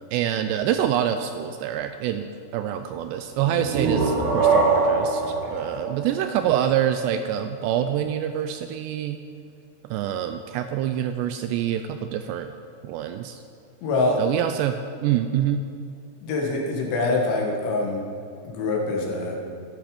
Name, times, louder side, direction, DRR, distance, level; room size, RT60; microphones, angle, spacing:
voice 1, 0.1-2.3 2.5-9.2 9.9-12.5 12.8-13.4 14.2-15.6, right 10 dB, 85° right, 8 dB, 2.5 m, -26 dB
sound 1, 3.4-7.0, right 4 dB, 60° right, 2.4 m, -23 dB
voice 2, 13.8-14.2 16.2-18.0 18.4-19.4, left 3 dB, 75° left, 0 dB, 4.1 m, -24 dB
13.0 x 12.5 x 5.1 m, 2.5 s
omnidirectional pair, 5.3 m